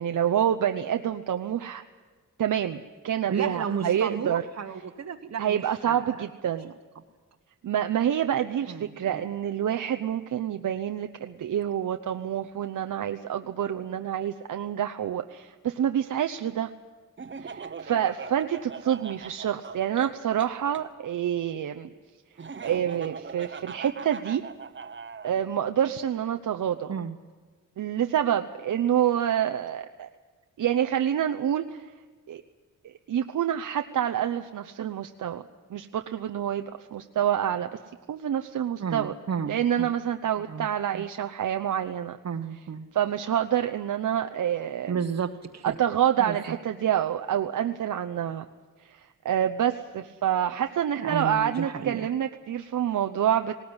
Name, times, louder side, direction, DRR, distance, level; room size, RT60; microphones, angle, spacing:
voice 1, 0.0-1.8 2.4-4.4 5.4-6.7 7.6-16.7 17.4-21.9 22.6-24.4 25.2-26.9 27.8-30.1 30.6-31.9 32.3-32.4 32.8-35.4 35.7-37.8 38.1-39.1 39.5-42.2 42.9-44.9 45.6-48.4 48.8-53.6, right 10 dB, 85° right, 7 dB, 0.9 m, -27 dB
voice 2, 3.3-6.2 8.7-9.2 26.9-27.2 38.8-39.9 40.5-40.7 40.9-41.0 42.2-42.9 44.9-45.8 46.2-46.6 51.0-52.1, right 6 dB, 60° right, 3 dB, 1.2 m, -33 dB
Laughter, 17.2-20.8 22.4-25.3, right 5 dB, 40° right, 1.1 m, -40 dB
19.5 x 18.5 x 9.7 m, 1.4 s
wide cardioid pair, 115°, 31 cm